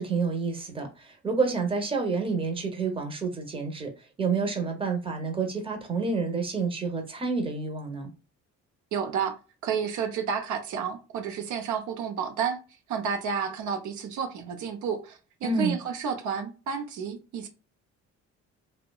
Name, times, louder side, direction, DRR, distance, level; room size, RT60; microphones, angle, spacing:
voice 1, 0.0-3.9 4.2-8.1 15.4-15.8, right 4 dB, 20° right, 0.7 m, -29 dB
voice 2, 8.9-9.4 9.6-12.6 12.9-17.5, right 6 dB, 75° right, 0.6 m, -31 dB
2.7 x 2.1 x 2.2 m
cardioid pair, 90°, 30 cm